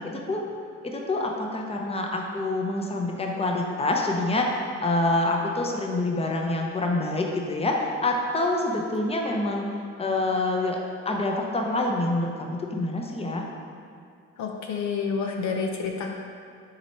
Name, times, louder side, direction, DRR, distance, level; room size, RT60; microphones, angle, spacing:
voice 1, 0.8-4.5 4.8-9.7 10.0-10.8 11.0-13.4, left 2 dB, 20° left, 0 dB, 0.8 m, -26 dB
voice 2, 14.4-16.1, left 5 dB, 70° left, 2 dB, 0.8 m, -29 dB
6.8 x 4.1 x 4.3 m, 2.3 s
cardioid pair, 90°, 30 cm